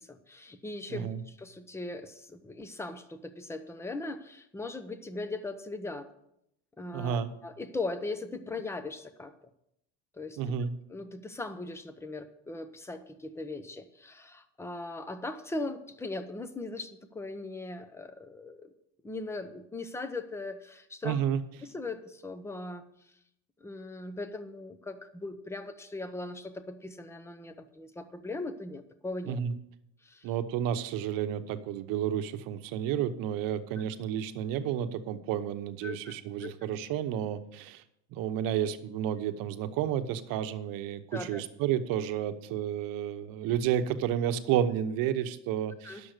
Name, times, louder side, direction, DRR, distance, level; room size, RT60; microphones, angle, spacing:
voice 1, 0.0-6.1 6.8-9.3 10.1-18.7 19.0-21.2 21.6-22.9 23.6-29.4 30.0-30.3 33.8-33.9 35.8-36.1 36.4-36.5 41.1-41.4 45.8-46.0, left 2 dB, 5° left, 10 dB, 0.8 m, -39 dB
voice 2, 0.9-1.2 6.9-7.3 10.4-10.7 21.0-21.4 29.3-29.6 30.2-37.8 38.1-46.1, right 9 dB, 65° right, 9 dB, 1.0 m, -31 dB
10.5 x 7.0 x 6.6 m, 0.79 s
cardioid pair, 130°, 36 cm